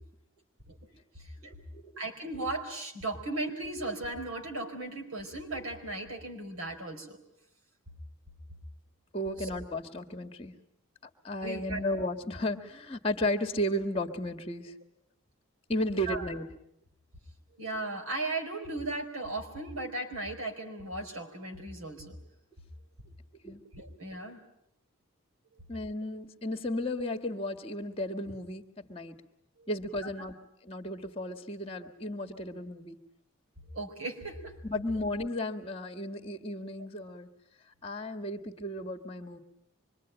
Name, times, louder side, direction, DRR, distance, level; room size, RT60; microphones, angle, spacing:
voice 1, 1.2-1.5 2.0-7.2 9.4-9.5 11.4-11.8 16.1-16.3 17.6-22.2 23.7-24.4 29.6-29.7 30.0-30.1 33.7-34.5, right 2 dB, 80° right, 5 dB, 4.3 m, -36 dB
voice 2, 9.1-10.5 11.2-14.7 15.7-16.5 23.4-23.6 25.7-29.2 29.7-30.3 30.6-33.0 34.6-37.3 37.8-39.4, left 1 dB, 25° left, 7 dB, 1.7 m, -34 dB
25.5 x 23.5 x 9.0 m, 0.77 s
head